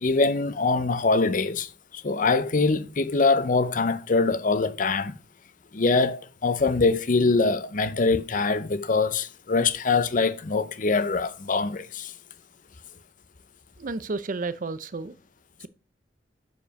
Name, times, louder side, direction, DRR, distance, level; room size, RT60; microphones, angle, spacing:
voice 1, 0.0-1.7 2.0-5.1 5.7-12.1, left 3 dB, 45° left, 0.6 m, -23 dB
voice 2, 13.8-15.2 15.6-15.7, right 3 dB, 45° right, 0.5 m, -32 dB
7.0 x 5.1 x 5.3 m
head